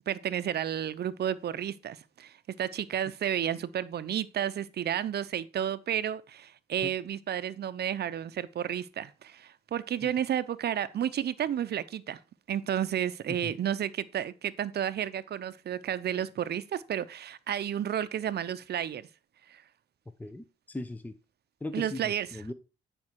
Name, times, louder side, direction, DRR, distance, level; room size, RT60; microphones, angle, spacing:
voice 1, 0.1-12.2 12.5-19.1 19.5-19.6 21.7-22.3, right 10 dB, 55° right, 0.7 m, -32 dB
voice 2, 20.2-21.1 21.6-22.5, left 2 dB, 10° left, 0.8 m, -39 dB
9.6 x 5.3 x 4.6 m
cardioid pair, 90°, 20 cm